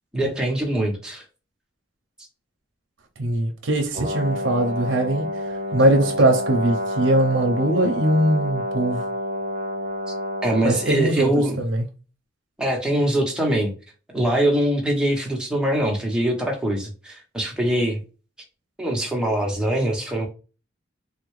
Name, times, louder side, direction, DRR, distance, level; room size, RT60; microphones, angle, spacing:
voice 1, 0.1-1.2 10.4-11.6 12.6-13.7 14.1-18.0 18.8-20.3, right 1 dB, 5° right, 0.8 m, -23 dB
voice 2, 3.2-5.3 5.7-9.0 10.6-11.9, right 1 dB, 80° right, 0.6 m, -21 dB
Brass instrument, 3.9-10.9, equal, 35° right, 0.6 m, -29 dB
3.5 x 2.2 x 3.1 m
head